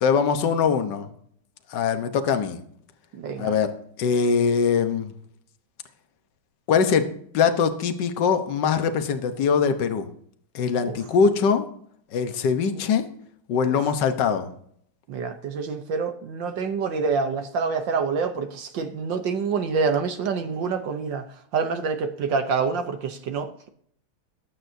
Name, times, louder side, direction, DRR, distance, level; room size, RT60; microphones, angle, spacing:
voice 1, 0.0-1.1 1.7-2.6 3.4-3.7 4.0-5.1 6.7-7.0 7.3-10.1 10.5-11.7 12.1-13.0 13.5-14.5, left 6 dB, 65° left, 1.7 m, -22 dB
voice 2, 3.1-3.5 10.8-11.0 13.6-13.8 15.1-21.2 21.5-23.5, right 5 dB, 70° right, 1.6 m, -27 dB
20.0 x 8.6 x 2.8 m
omnidirectional pair, 2.1 m